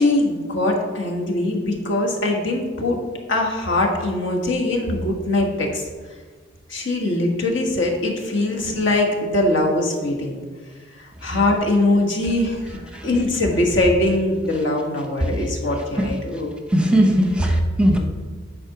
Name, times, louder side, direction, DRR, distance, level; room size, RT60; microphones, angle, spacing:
voice 1, 0.0-3.0 3.3-5.8 6.7-10.4 11.2-12.8 13.0-16.5, left 2 dB, 70° left, 0 dB, 1.6 m, -21 dB
voice 2, 16.7-18.0, equal, 5° right, 2 dB, 0.8 m, -19 dB
9.8 x 4.4 x 5.9 m, 1.5 s
head